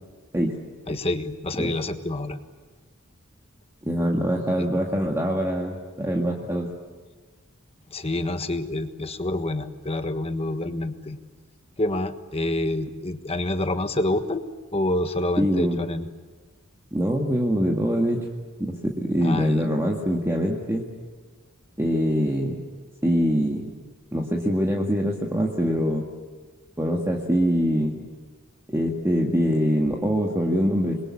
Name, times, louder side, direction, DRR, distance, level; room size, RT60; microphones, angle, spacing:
voice 1, 0.9-2.4 4.6-4.7 7.9-11.2 11.8-14.4 14.7-16.1 19.2-19.6, left 1 dB, 30° left, 8 dB, 1.4 m, -27 dB
voice 2, 3.8-6.7 15.4-15.8 16.9-18.3 18.6-20.8 21.8-22.6 23.0-23.7 24.1-26.0 26.8-28.0 28.7-31.0, equal, 15° right, -1 dB, 2.0 m, -24 dB
28.0 x 22.0 x 8.6 m, 1.4 s
head